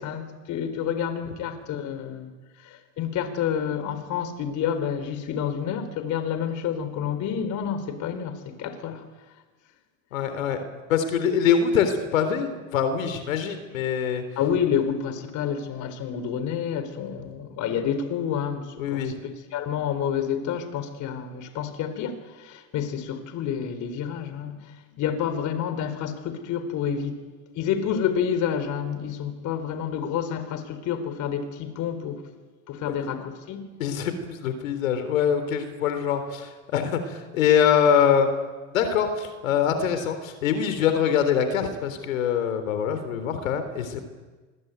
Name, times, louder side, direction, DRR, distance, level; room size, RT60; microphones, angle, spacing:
voice 1, 0.0-2.3 2.6-9.0 14.4-19.1 19.5-27.2 27.5-32.3 32.7-33.7, left 8 dB, 45° left, 4.3 m, -29 dB
voice 2, 10.1-10.6 10.9-14.2 18.8-19.2 33.8-38.3 38.7-44.0, left 8 dB, 85° left, 3.7 m, -24 dB
26.0 x 21.5 x 9.4 m
supercardioid pair, 110°, 39 cm